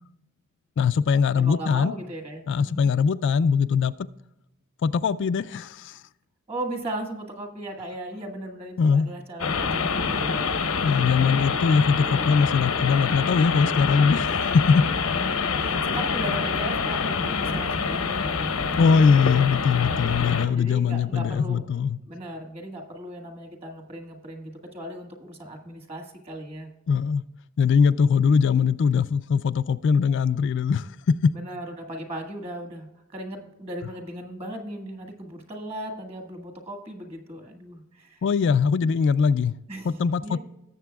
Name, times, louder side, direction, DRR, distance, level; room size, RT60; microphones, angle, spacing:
voice 1, 0.8-1.9 2.5-3.9 4.8-6.0 8.8-9.1 10.8-14.9 18.8-22.0 26.9-27.2 27.6-31.3 38.2-39.5 39.8-40.4, left 6 dB, 60° left, 0.3 m, -21 dB
voice 2, 1.4-2.9 6.5-10.7 15.6-18.8 20.4-21.7 22.1-26.7 31.3-38.2 39.7-40.4, right 1 dB, 30° right, 1.7 m, -37 dB
sound 1, 9.4-20.5, left 5 dB, 85° left, 0.8 m, -26 dB
18.0 x 7.5 x 2.3 m
head